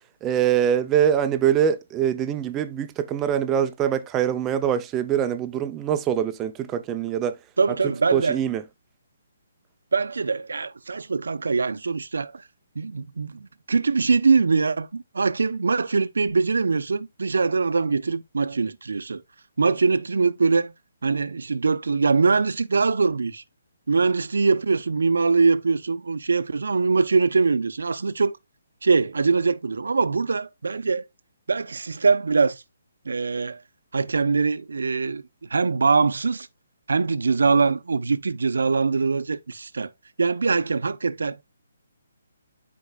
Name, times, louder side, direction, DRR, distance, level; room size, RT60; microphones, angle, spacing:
voice 1, 0.2-7.4 7.8-8.6, right 9 dB, 15° right, 0.6 m, -23 dB
voice 2, 7.6-8.4 9.9-12.4 12.7-19.2 19.6-20.7 21.0-23.4 23.9-28.4 28.8-31.0 31.5-32.6 33.0-33.6 33.9-35.2 35.5-36.5 36.9-39.9 40.2-41.4, right 4 dB, 85° right, 0.8 m, -22 dB
12.0 x 4.6 x 2.4 m
hypercardioid pair, 160°, 0 cm